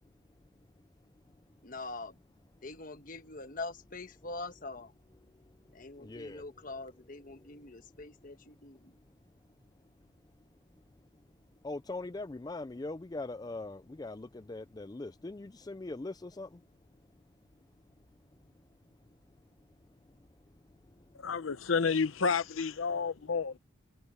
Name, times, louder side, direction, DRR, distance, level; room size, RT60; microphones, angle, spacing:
voice 1, 1.6-2.1 2.6-4.9 5.7-8.9, left 3 dB, 45° left, 1.3 m, -43 dB
voice 2, 6.0-6.4 11.6-16.5, left 2 dB, 20° left, 0.4 m, -41 dB
voice 3, 21.1-23.6, left 5 dB, 85° left, 0.8 m, -30 dB
head